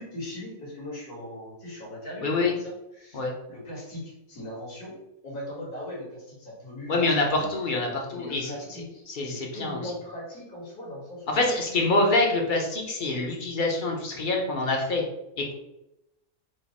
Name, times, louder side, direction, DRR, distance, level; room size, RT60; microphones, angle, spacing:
voice 1, 0.0-3.2 3.5-5.0 5.2-7.7 8.1-11.4, left 1 dB, 80° left, -5 dB, 2.3 m, -39 dB
voice 2, 2.2-2.5 3.1-3.3 6.9-8.5 9.1-9.8 11.3-15.0 15.4-15.5, left 2 dB, 45° left, 0 dB, 0.7 m, -25 dB
5.1 x 2.0 x 4.2 m, 0.89 s
omnidirectional pair, 1.6 m